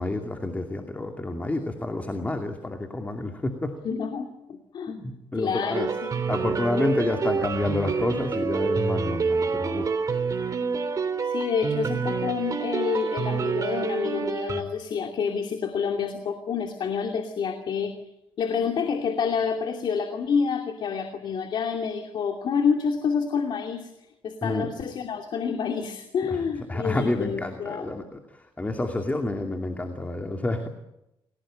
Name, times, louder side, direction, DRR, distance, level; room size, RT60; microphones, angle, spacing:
voice 1, 0.0-3.7 4.9-5.9 6.3-9.9 24.4-24.7 26.2-26.4 26.7-30.7, left 2 dB, 15° left, 4 dB, 2.7 m, -29 dB
voice 2, 3.8-4.9 5.3-6.2 11.3-18.0 18.4-23.9 24.2-27.9, left 6 dB, 60° left, 4 dB, 2.7 m, -28 dB
sound 1, 5.7-14.6, right 5 dB, 40° right, 3.4 m, -28 dB
28.5 x 18.0 x 8.9 m, 0.90 s
cardioid pair, 105°, 9 cm